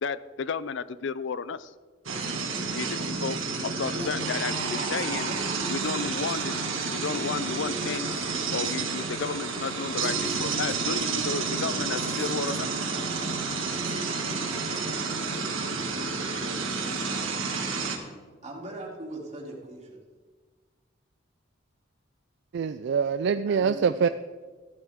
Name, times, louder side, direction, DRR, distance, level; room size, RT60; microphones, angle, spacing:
voice 1, 0.0-1.7 2.7-3.4 3.6-5.3 5.7-8.2 8.5-12.8, left 5 dB, 65° left, 16 dB, 0.5 m, -33 dB
sound 1, 2.1-18.0, right 4 dB, 85° right, 1.9 m, -30 dB
voice 2, 18.4-20.0 23.5-24.1, right 1 dB, 35° right, -3 dB, 2.9 m, -40 dB
voice 3, 22.5-24.1, right 6 dB, 60° right, 12 dB, 0.3 m, -24 dB
14.0 x 12.0 x 3.6 m, 1.4 s
head